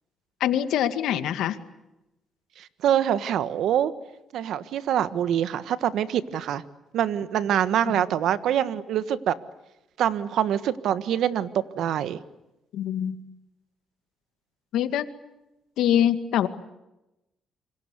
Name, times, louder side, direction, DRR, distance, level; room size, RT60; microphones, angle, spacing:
voice 1, 0.4-1.6 7.9-8.0 12.7-13.1 14.7-15.1 15.8-16.5, left 10 dB, 85° left, 10 dB, 2.1 m, -24 dB
voice 2, 2.6-3.9 4.3-6.6 6.9-9.4 10.0-12.2, right 10 dB, 80° right, 13 dB, 1.5 m, -25 dB
27.5 x 25.5 x 8.4 m, 0.94 s
cardioid pair, 90°, 0 cm